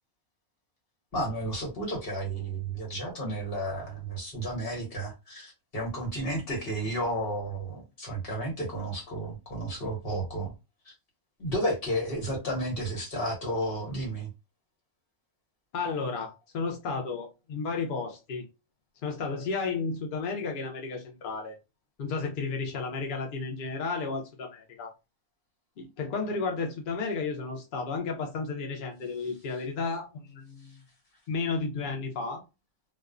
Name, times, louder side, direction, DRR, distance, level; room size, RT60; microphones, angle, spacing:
voice 1, 1.1-10.5 11.4-14.3, right 1 dB, 45° left, 1.2 m, -32 dB
voice 2, 15.7-18.5 19.0-21.6 22.0-24.9 25.8-30.8 31.3-32.4, left 4 dB, 65° left, 0.5 m, -33 dB
2.4 x 2.1 x 2.4 m
omnidirectional pair, 1.4 m